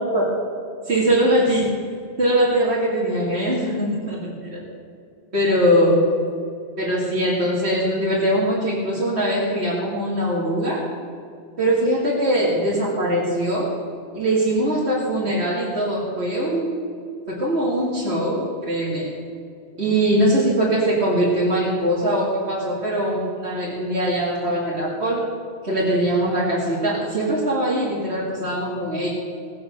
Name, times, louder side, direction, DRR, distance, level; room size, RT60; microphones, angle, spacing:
voice 1, 0.8-1.7 2.2-4.6 5.3-6.0 6.8-10.8 11.6-13.7 14.1-16.7 17.3-19.1 19.8-25.3 25.6-29.1, right 1 dB, 80° right, -7 dB, 2.7 m, -21 dB
18.0 x 8.6 x 6.6 m, 2.5 s
omnidirectional pair, 1.1 m